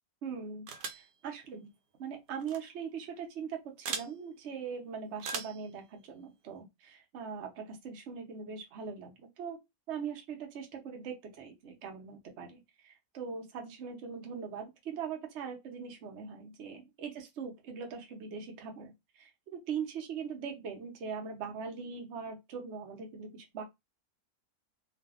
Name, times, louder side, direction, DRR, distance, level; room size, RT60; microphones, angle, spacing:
voice 1, 0.2-1.7 2.0-9.6 9.9-23.6, right 6 dB, 55° right, 0.9 m, -41 dB
sound 1, 0.7-1.1 2.4-2.6 3.8-4.1 5.2-5.6, right 6 dB, 80° right, 1.1 m, -38 dB
2.6 x 2.4 x 2.4 m
omnidirectional pair, 1.6 m